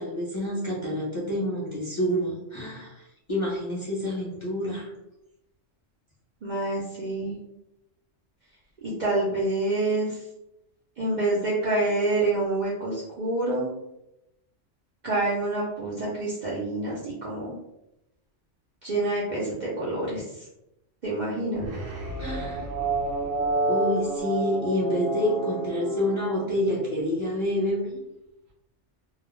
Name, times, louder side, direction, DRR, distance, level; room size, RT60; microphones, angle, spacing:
voice 1, 0.0-4.9 22.2-22.7 23.7-28.0, left 1 dB, 30° left, -7 dB, 0.6 m, -28 dB
voice 2, 6.4-7.4 8.8-10.2 11.0-13.7 15.0-17.5 18.8-20.5 21.0-21.7, right 2 dB, 50° right, -6 dB, 0.5 m, -27 dB
sound 1, 21.6-27.1, right 2 dB, 70° right, 0.9 m, -29 dB
2.4 x 2.0 x 3.0 m, 0.87 s
omnidirectional pair, 1.3 m